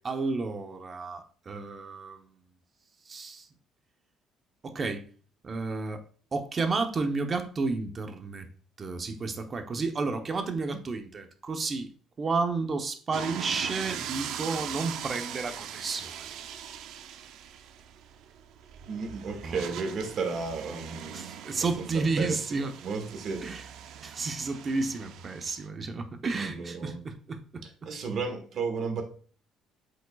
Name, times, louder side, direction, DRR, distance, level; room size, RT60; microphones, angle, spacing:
voice 1, 0.0-2.3 3.1-3.5 4.6-5.0 5.4-6.0 6.3-8.5 8.8-16.2 19.4-19.7 21.1-22.7 23.4-23.7 24.0-27.9, right 3 dB, 30° right, 0.8 m, -32 dB
sound 1, 13.1-25.7, right 9 dB, 75° right, 0.5 m, -41 dB
voice 2, 18.9-21.3 21.6-21.7 22.2-23.4 26.3-27.0 27.8-29.0, right 4 dB, 50° right, 1.4 m, -33 dB
8.0 x 5.2 x 2.3 m
cardioid pair, 135°, 0 cm